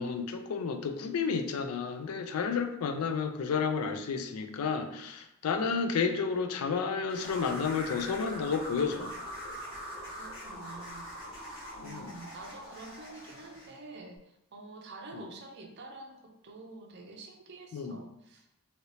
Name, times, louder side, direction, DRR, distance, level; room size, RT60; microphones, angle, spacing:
voice 1, 0.0-9.2 11.8-12.1 15.1-15.2 17.7-18.0, left 5 dB, 80° left, 7 dB, 0.4 m, -31 dB
sound 1, 7.1-13.8, equal, 60° left, 1.3 m, -42 dB
voice 2, 10.2-11.1 11.8-14.2 14.5-18.5, right 3 dB, 50° right, 2 dB, 0.5 m, -47 dB
2.8 x 2.7 x 3.2 m, 0.79 s
head